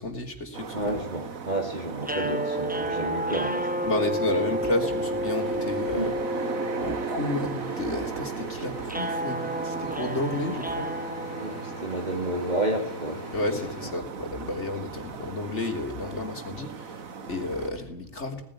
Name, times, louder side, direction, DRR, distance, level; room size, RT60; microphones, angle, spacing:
voice 1, 0.0-1.0 3.9-6.2 6.8-10.9 13.3-18.4, left 2 dB, 55° left, 4 dB, 3.6 m, -31 dB
sound 1, 0.5-17.7, right 6 dB, 80° right, 1.8 m, -37 dB
voice 2, 0.7-3.9 5.9-6.1 11.3-13.3, right 1 dB, 30° right, 2 dB, 2.6 m, -30 dB
sound 2, 2.0-12.2, equal, 5° right, 1.1 m, -32 dB
sound 3, 5.3-13.9, left 3 dB, 75° left, 2.6 m, -43 dB
18.5 x 15.5 x 10.0 m, 0.75 s
omnidirectional pair, 1.4 m